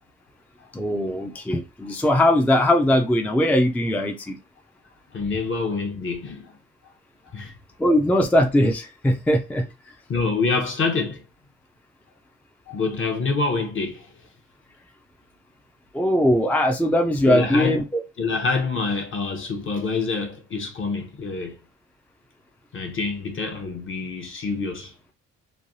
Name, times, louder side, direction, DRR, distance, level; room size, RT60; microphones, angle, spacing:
voice 1, 0.7-4.4 7.8-9.7 15.9-18.0, left 1 dB, 5° left, 0.4 m, -20 dB
voice 2, 5.1-6.5 7.3-7.5 10.1-11.2 12.7-14.1 17.3-17.8 18.2-21.6 22.7-24.9, left 4 dB, 40° left, 0.9 m, -26 dB
3.1 x 2.3 x 2.6 m
cardioid pair, 90°, 30 cm